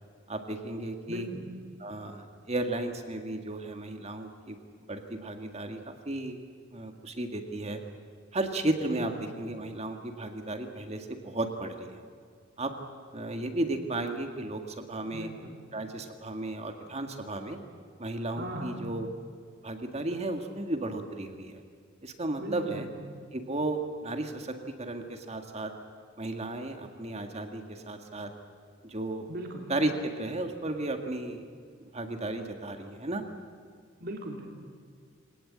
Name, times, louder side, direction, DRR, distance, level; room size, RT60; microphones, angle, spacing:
voice 1, 0.3-1.3 1.8-4.6 4.9-6.4 6.7-7.8 8.3-12.0 12.6-12.7 13.1-15.3 15.7-17.6 18.0-19.1 19.6-21.6 22.0-22.9 23.3-25.7 26.2-28.3 28.8-29.3 29.7-31.4 31.8-33.2, right 2 dB, 30° right, 5 dB, 1.8 m, -34 dB
voice 2, 1.1-1.4 8.9-9.1 15.1-15.5 18.3-18.9 22.4-22.9 29.3-29.7 34.0-34.5, right 1 dB, 50° right, 1 dB, 3.0 m, -38 dB
24.0 x 18.5 x 8.7 m, 2.2 s
head